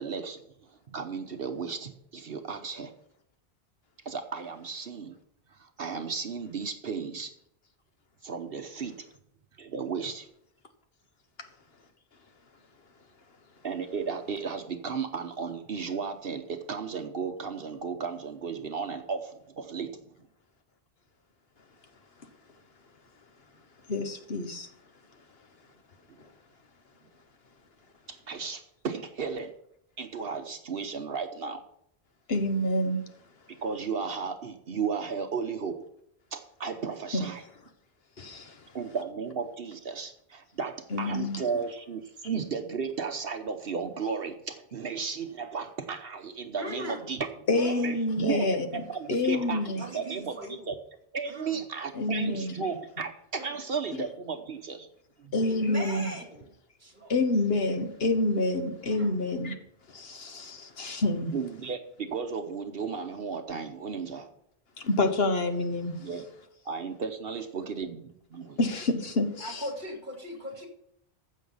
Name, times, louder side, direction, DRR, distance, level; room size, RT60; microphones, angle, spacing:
voice 1, 0.0-2.9 4.0-5.2 5.5-7.3 8.2-9.0 9.6-10.3 13.6-20.0 28.1-29.5 30.0-31.6 33.5-35.8 36.3-37.4 38.7-47.3 47.8-48.5 48.7-49.6 49.9-50.4 50.7-50.8 51.1-54.9 61.3-64.3 66.0-66.2 66.6-68.6, right 5 dB, 65° right, 1.1 m, -34 dB
voice 2, 23.9-24.7 32.3-33.0 38.2-38.6 40.9-41.4 47.5-48.7 49.1-49.8 51.9-52.5 55.3-56.1 57.1-59.6 59.9-61.3 64.8-66.0 68.6-69.6, left 2 dB, 65° left, 1.4 m, -27 dB
voice 3, 46.6-47.1 47.5-47.9 48.4-48.5 49.1-49.5 49.8-50.7 51.3-51.6 53.4-53.5 55.5-56.4 56.8-57.1 58.9-59.1 69.4-70.7, equal, 45° right, 2.7 m, -39 dB
15.0 x 6.4 x 5.5 m
omnidirectional pair, 1.1 m